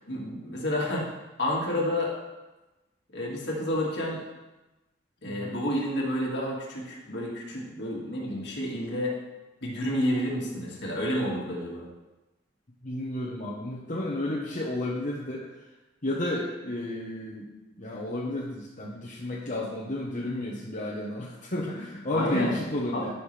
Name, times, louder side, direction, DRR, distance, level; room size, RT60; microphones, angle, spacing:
voice 1, 0.1-1.0 1.4-2.1 3.1-4.2 5.2-9.1 9.6-11.8 22.1-22.6 22.9-23.1, left 1 dB, 65° left, -3 dB, 2.2 m, -30 dB
voice 2, 12.8-15.5 16.0-17.5 17.8-23.1, left 1 dB, 45° left, -4 dB, 1.1 m, -32 dB
13.0 x 5.8 x 3.4 m, 1.1 s
head